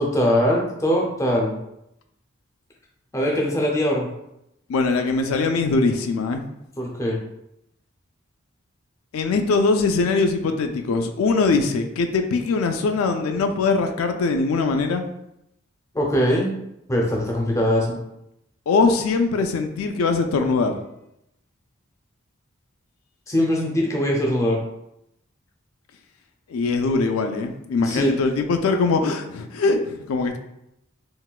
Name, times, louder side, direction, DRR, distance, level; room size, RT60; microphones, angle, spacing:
voice 1, 0.0-1.5 3.1-4.1 6.8-7.2 15.9-16.5 16.9-18.0 23.3-24.6 27.8-28.1, equal, 15° left, -2 dB, 0.4 m, -21 dB
voice 2, 4.7-6.5 9.1-15.1 18.7-20.8 26.5-30.4, left 4 dB, 85° left, 6 dB, 0.3 m, -22 dB
3.8 x 2.2 x 2.3 m, 0.82 s
head